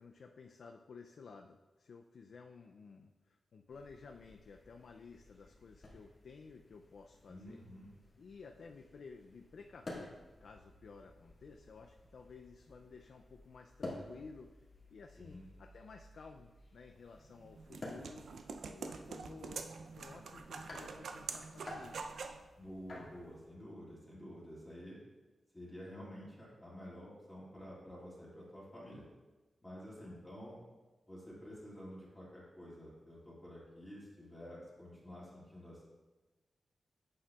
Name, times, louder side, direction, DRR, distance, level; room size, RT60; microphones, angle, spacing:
voice 1, 0.0-7.6 8.2-18.3 18.6-22.2 29.9-30.2, left 4 dB, 65° left, 4 dB, 0.3 m, -54 dB
sound 1, 3.7-23.5, left 1 dB, 45° left, 1.9 m, -53 dB
voice 2, 7.3-7.9 15.2-15.5 22.6-25.0 25.5-29.0 29.6-30.6 31.1-35.8, equal, 10° left, -8 dB, 2.1 m, -50 dB
sound 2, 17.2-22.4, right 4 dB, 75° right, 0.4 m, -46 dB
8.5 x 7.5 x 2.3 m, 1.2 s
wide cardioid pair, 150°, 0 cm